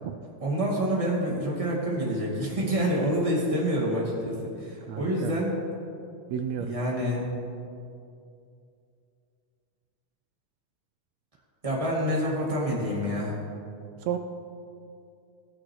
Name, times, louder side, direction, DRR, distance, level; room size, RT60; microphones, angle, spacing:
voice 1, 0.4-5.5 6.6-7.3 11.6-13.4, equal, 15° right, -5 dB, 1.8 m, -27 dB
voice 2, 4.9-5.3 6.3-6.7 14.1-14.2, right 9 dB, 80° right, 6 dB, 1.6 m, -31 dB
17.5 x 6.4 x 4.7 m, 2.5 s
omnidirectional pair, 3.4 m